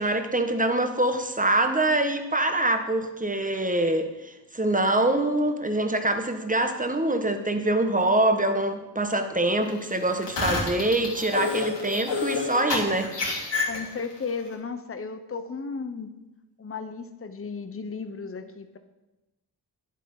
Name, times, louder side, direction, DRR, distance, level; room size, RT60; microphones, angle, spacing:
voice 1, 0.0-13.1, right 2 dB, 20° right, 7 dB, 1.2 m, -24 dB
sound 1, 10.1-14.2, left 4 dB, 85° left, 3.0 m, -29 dB
voice 2, 13.6-16.1 16.6-18.8, left 5 dB, 30° left, 8 dB, 0.9 m, -34 dB
10.5 x 7.6 x 5.5 m, 1.0 s
cardioid pair, 55°, 42 cm